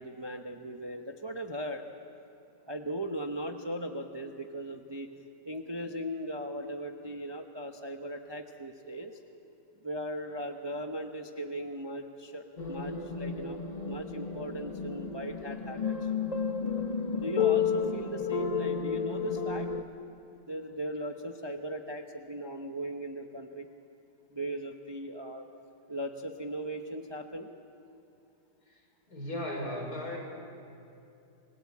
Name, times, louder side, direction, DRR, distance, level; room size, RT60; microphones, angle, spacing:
voice 1, 0.0-1.8 2.7-5.1 5.4-9.2 9.8-16.1 17.1-19.7 20.5-23.7 24.3-25.4 25.9-27.5, right 1 dB, 20° right, 4 dB, 0.9 m, -38 dB
sound 1, 12.6-19.8, left 6 dB, 30° left, 1.0 m, -32 dB
voice 2, 29.1-30.2, left 1 dB, 65° left, -1 dB, 5.9 m, -36 dB
28.5 x 18.5 x 8.7 m, 2.7 s
omnidirectional pair, 1.8 m